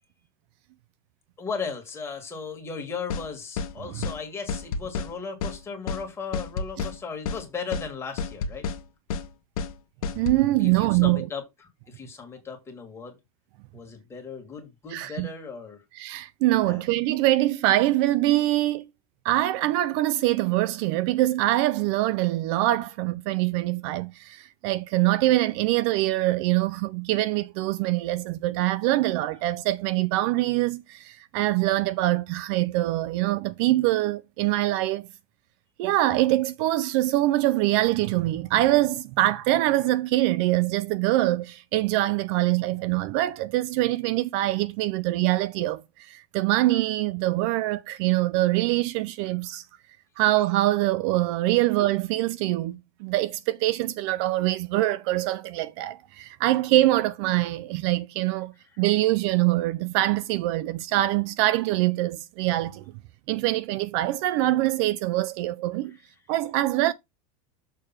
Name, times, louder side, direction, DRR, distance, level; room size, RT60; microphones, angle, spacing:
voice 1, 1.4-8.6 10.6-13.2 13.7-15.8 16.6-16.9 58.7-58.8 65.9-66.0, left 5 dB, 15° left, 1.9 m, -36 dB
sound 1, 3.1-3.3 3.6-3.7 4.0-4.2 4.5-5.1 5.4-5.6 5.9-6.0 6.3-7.0 7.3-7.4 7.7-7.9 8.2-8.8 9.1-9.3 9.6-9.7 10.0-10.4, left 5 dB, 90° left, 1.1 m, -30 dB
voice 2, 10.1-11.3 14.9-15.3 16.0-18.9 19.2-35.1 35.8-49.6 50.2-62.8 63.3-66.0 66.3-66.9, right 16 dB, 50° right, 0.4 m, -24 dB
6.7 x 3.3 x 5.8 m
supercardioid pair, 155°, 18 cm